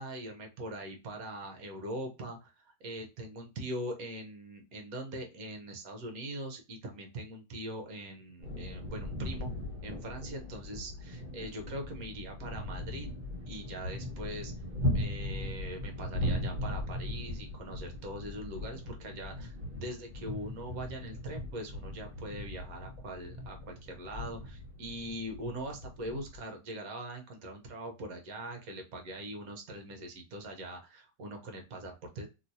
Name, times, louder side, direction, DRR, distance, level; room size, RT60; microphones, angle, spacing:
voice 1, 0.0-9.5 9.8-13.1 13.5-14.5 14.9-32.3, right 1 dB, 60° right, 4 dB, 1.2 m, -42 dB
sound 1, 8.4-26.4, left 1 dB, 30° right, 1.1 m, -38 dB
3.0 x 2.9 x 2.7 m, 0.29 s
omnidirectional pair, 1.9 m